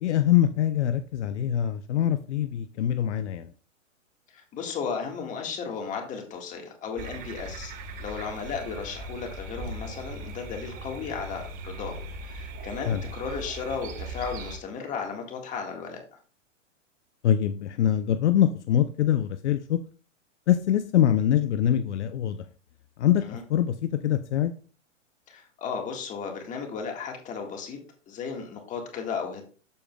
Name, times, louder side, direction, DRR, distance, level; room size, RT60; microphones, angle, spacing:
voice 1, 0.0-3.5 12.9-13.0 17.2-19.8 20.5-22.4 23.0-24.5, left 10 dB, 60° left, 0.6 m, -24 dB
voice 2, 4.3-7.7 8.0-16.0 23.2-23.4 25.3-27.8 28.1-29.4, left 5 dB, 20° left, 1.6 m, -35 dB
sound 1, 7.0-14.6, right 2 dB, 20° right, 1.0 m, -39 dB
12.5 x 5.0 x 2.3 m
hypercardioid pair, 145°, 38 cm